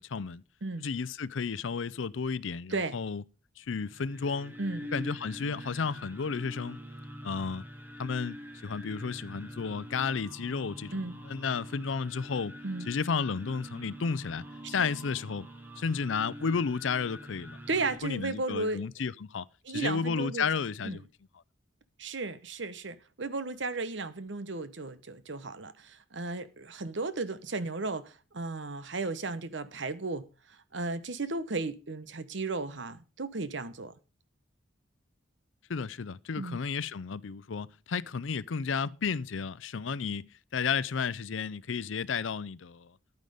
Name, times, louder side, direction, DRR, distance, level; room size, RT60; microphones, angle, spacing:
voice 1, 0.0-0.4 0.8-3.2 3.6-4.6 4.9-6.8 7.2-7.6 8.0-12.6 12.9-15.5 15.8-17.6 18.0-21.0 35.7-42.9, left 5 dB, 80° left, 0.5 m, -32 dB
sound 1, 3.7-18.0, equal, 10° right, 1.3 m, -45 dB
voice 2, 17.7-18.9 19.6-20.5 20.8-21.0 22.0-33.9 36.4-36.6, right 3 dB, 70° right, 1.0 m, -35 dB
10.5 x 9.4 x 5.0 m
head